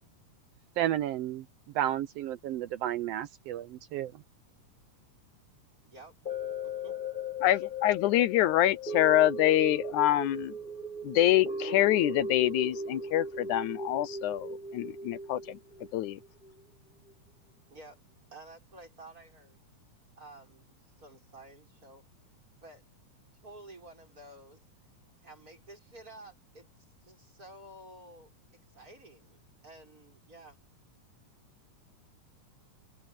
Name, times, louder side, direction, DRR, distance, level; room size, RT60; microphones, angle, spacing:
voice 1, 0.8-1.4 1.7-4.1, right 12 dB, 90° right, 1.4 m, -32 dB
voice 2, 5.8-6.2 6.6-7.0 17.7-18.0 18.3-19.6 20.1-22.0 22.6-22.8 23.4-24.6 25.2-26.7 27.0-30.6, right 2 dB, 25° right, 6.8 m, -52 dB
sound 1, 6.3-16.6 17.1-17.2, left 1 dB, 20° left, 1.5 m, -38 dB
voice 3, 7.4-10.5 11.0-15.6 15.9-16.2, left 13 dB, 75° left, 2.1 m, -26 dB
omnidirectional pair, 3.7 m